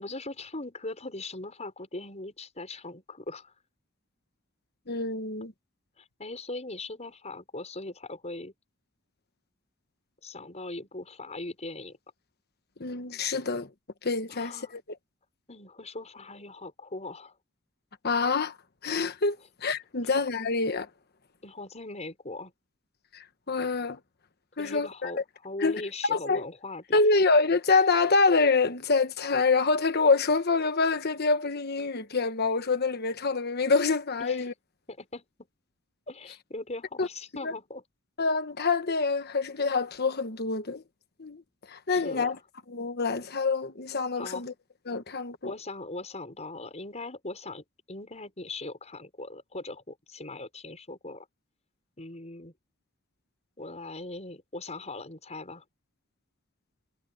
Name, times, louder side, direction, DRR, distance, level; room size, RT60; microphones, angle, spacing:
voice 1, 0.0-3.5 6.0-8.5 10.2-12.0 14.3-14.7 15.5-17.3 21.4-22.5 24.6-27.0 34.2-34.5 34.9-35.2 36.1-37.8 41.9-42.4 44.1-44.5 45.4-51.3 52.0-52.5 53.6-55.6, left 2 dB, 35° left, 6.0 m, -40 dB
voice 2, 4.9-5.5 12.8-13.7 14.0-14.8 18.0-18.5 18.8-20.9 23.1-24.0 24.6-25.1 25.6-25.8 26.1-26.4 26.9-34.5 37.0-37.1 37.4-37.5 38.2-40.8 41.2-41.4 41.7-42.4 42.7-44.5 44.9-45.5, left 4 dB, 50° left, 1.2 m, -26 dB
head